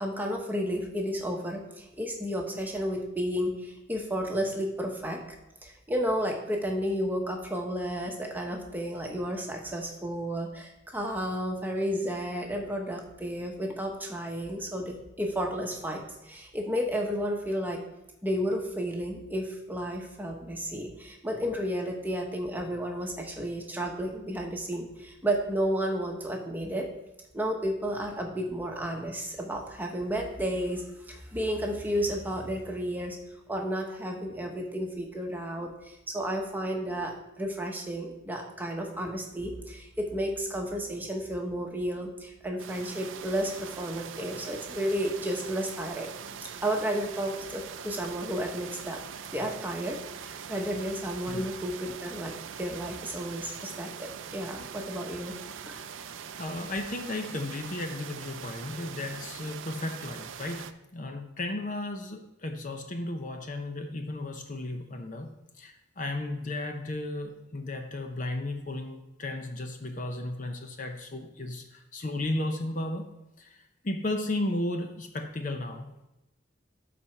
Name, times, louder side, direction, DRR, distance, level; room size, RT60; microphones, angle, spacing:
voice 1, 0.0-5.2 5.6-17.8 18.2-26.9 27.3-33.2 33.5-46.1 46.6-49.0 49.3-50.0 50.2-55.4 55.6-55.8, equal, 10° right, 1 dB, 1.1 m, -32 dB
sound 1, 42.6-60.7, right 7 dB, 85° right, 0.5 m, -42 dB
voice 2, 56.4-60.7 60.9-65.3 65.6-71.6 71.9-73.1 73.4-73.5 73.8-76.1, left 2 dB, 40° left, 5 dB, 0.7 m, -34 dB
12.5 x 4.2 x 4.5 m, 0.93 s
head